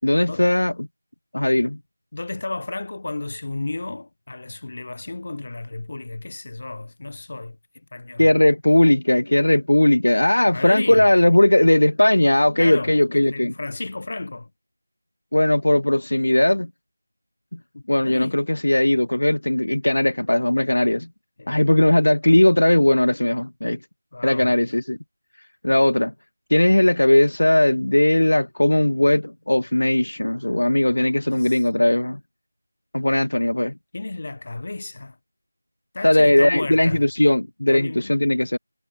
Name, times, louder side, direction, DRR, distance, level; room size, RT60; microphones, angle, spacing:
voice 1, 0.0-0.9 1.3-1.8 8.2-13.5 15.3-16.7 17.5-17.6 17.9-21.1 21.5-23.8 24.2-25.0 25.6-26.1 26.5-32.2 32.9-33.7 36.0-38.6, left 1 dB, 75° left, 0.5 m, -18 dB
voice 2, 2.1-7.6 7.9-8.3 10.4-11.1 12.6-14.5 17.7-18.4 21.4-21.6 24.1-24.5 31.2-31.6 33.9-35.2 35.9-37.1 37.7-38.2, left 2 dB, 45° left, 1.1 m, -33 dB
figure-of-eight pair, 170°, 0 cm